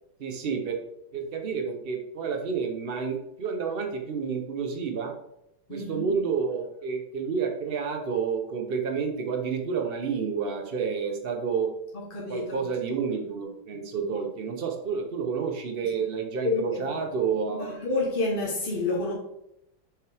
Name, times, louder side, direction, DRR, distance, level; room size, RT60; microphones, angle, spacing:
voice 1, 0.2-0.8 1.1-5.1 5.7-11.7 12.3-17.7, right 6 dB, 80° right, 0.5 m, -30 dB
voice 2, 5.7-6.1 11.9-12.6 14.0-14.1 15.8-16.0 16.4-17.0 17.5-19.1, left 3 dB, 35° left, 1.0 m, -29 dB
7.1 x 5.8 x 3.4 m
omnidirectional pair, 2.1 m